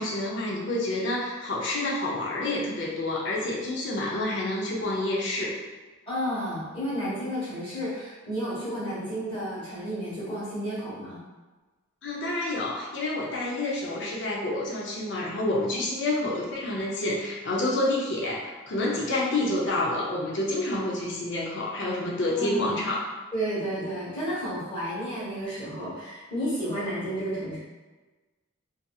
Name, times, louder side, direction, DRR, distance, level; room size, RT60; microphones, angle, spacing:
voice 1, 0.0-5.6 12.0-23.1, left 1 dB, 60° left, -4 dB, 0.5 m, -28 dB
voice 2, 6.1-11.2 22.4-22.8 23.3-27.6, equal, 25° left, -10 dB, 1.2 m, -32 dB
2.6 x 2.6 x 2.3 m, 1.3 s
head